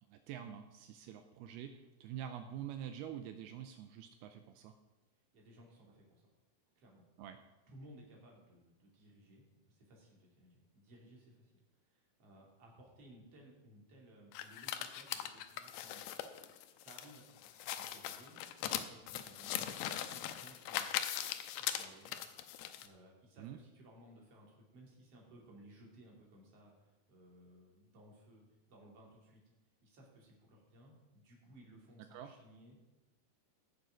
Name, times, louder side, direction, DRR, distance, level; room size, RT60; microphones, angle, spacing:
voice 1, 0.1-4.8 7.2-7.4 23.4-23.6 32.0-32.4, right 10 dB, 80° right, 7 dB, 2.6 m, -46 dB
voice 2, 5.3-6.3 6.8-7.0 7.7-11.6 11.9-16.0 16.8-17.3 17.8-18.4 18.8-20.9 21.6-22.1 22.8-29.4 29.8-32.8, right 1 dB, 40° right, -2 dB, 3.5 m, -60 dB
sound 1, 14.3-22.9, left 11 dB, 80° left, 2.6 m, -40 dB
17.0 x 6.8 x 5.1 m, 1.1 s
omnidirectional pair, 4.7 m